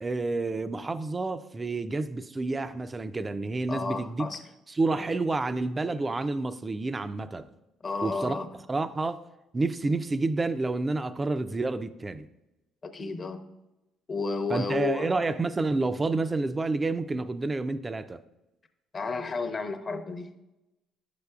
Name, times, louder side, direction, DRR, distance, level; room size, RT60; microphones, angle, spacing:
voice 1, 0.0-4.3 4.7-7.5 8.0-8.4 8.7-9.2 9.5-12.3 14.5-18.2, right 3 dB, 25° right, 0.4 m, -29 dB
voice 2, 3.7-4.4 7.8-8.5 12.9-13.4 14.1-15.1 18.9-20.4, left 4 dB, 35° left, 0.7 m, -32 dB
9.4 x 6.7 x 2.3 m
supercardioid pair, 85°, 0 cm